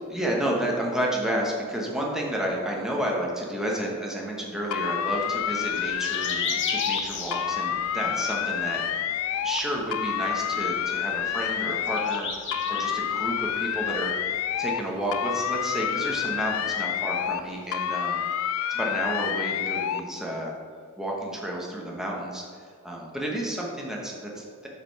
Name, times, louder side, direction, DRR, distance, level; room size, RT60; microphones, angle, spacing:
voice 1, 0.0-8.8 9.4-12.3 12.7-14.1 14.6-18.2 18.7-20.5 21.0-24.7, right 1 dB, ahead, -3 dB, 1.0 m, -31 dB
sound 1, 4.7-7.0 7.3-9.6 9.9-12.2 12.5-14.8 15.1-17.4 17.7-20.0, left 9 dB, 70° left, 0.3 m, -28 dB
sound 2, 4.7-17.7, left 4 dB, 55° left, 0.9 m, -39 dB
7.2 x 5.1 x 4.5 m, 2.1 s
head